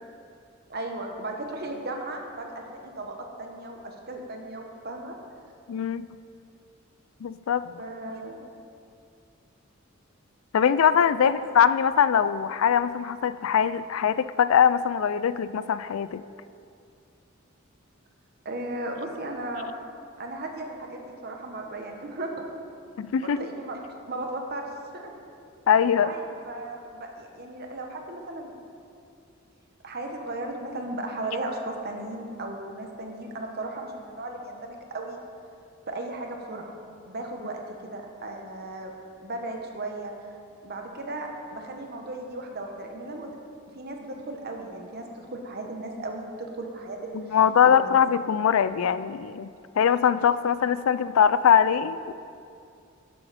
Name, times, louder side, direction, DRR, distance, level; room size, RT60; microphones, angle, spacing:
voice 1, 0.7-5.2 7.8-8.4 11.2-11.3 18.4-19.7 20.2-22.4 23.2-23.8 24.1-24.7 24.9-25.1 26.0-28.5 29.8-35.2 35.9-36.7 37.0-38.9 39.2-40.1 40.6-43.3 43.7-47.2 47.6-47.9, right 2 dB, 50° right, 2 dB, 1.2 m, -36 dB
voice 2, 5.7-6.1 7.2-7.7 10.5-16.2 23.0-23.4 25.7-26.1 47.1-49.5 49.7-52.1, left 8 dB, 90° left, 15 dB, 0.4 m, -22 dB
12.5 x 8.2 x 4.2 m, 2.5 s
head